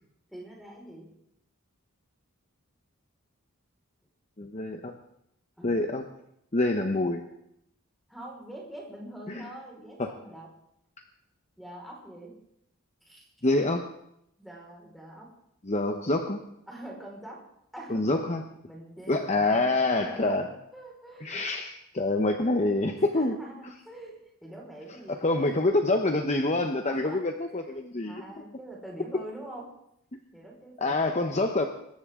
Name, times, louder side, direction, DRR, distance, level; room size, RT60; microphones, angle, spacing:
voice 1, 0.3-1.1 5.6-5.8 8.1-10.5 11.6-12.3 13.0-13.2 14.4-15.3 16.7-17.4 17.7-19.7 19.9-20.4 20.7-21.4 22.9-25.5 26.9-27.2 28.0-29.7 30.3-31.4, right 1 dB, ahead, -2 dB, 4.9 m, -44 dB
voice 2, 4.4-5.0 5.6-6.0 6.5-7.3 9.3-9.4 10.0-10.1 13.4-13.9 15.6-16.4 17.9-18.4 19.1-20.5 21.2-23.3 25.2-28.2 30.1-30.2 30.8-31.6, left 2 dB, 30° left, 5 dB, 0.9 m, -26 dB
25.5 x 14.5 x 3.7 m, 0.77 s
head